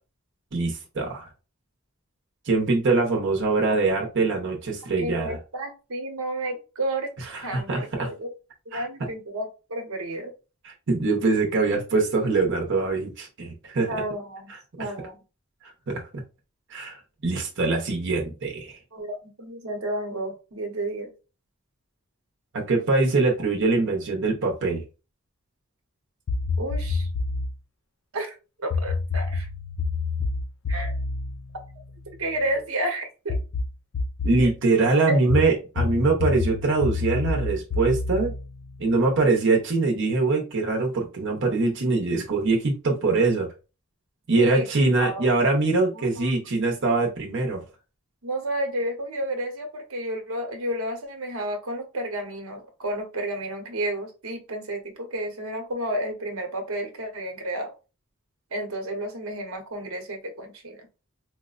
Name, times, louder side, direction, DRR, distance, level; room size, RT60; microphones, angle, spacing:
voice 1, 0.5-1.3 2.5-5.4 7.3-8.1 8.7-8.8 10.6-13.9 15.9-16.0 16.7-18.8 22.5-24.8 34.2-38.3 38.8-43.5 44.3-47.6, right 3 dB, 60° right, 0 dB, 0.8 m, -23 dB
voice 2, 5.0-8.3 8.7-10.3 13.9-14.5 14.8-15.2 18.9-21.1 26.6-27.1 28.1-29.5 30.7-30.9 32.2-33.4 34.4-34.5 35.1-35.2 44.4-44.7 45.0-45.3 45.9-46.4 48.2-57.7 58.5-60.9, right 1 dB, 90° right, 4 dB, 1.0 m, -31 dB
sound 1, 26.3-27.6 28.7-32.4 33.3-34.5 35.3-39.2, left 3 dB, 65° left, 0.4 m, -28 dB
4.4 x 2.1 x 2.4 m, 0.31 s
head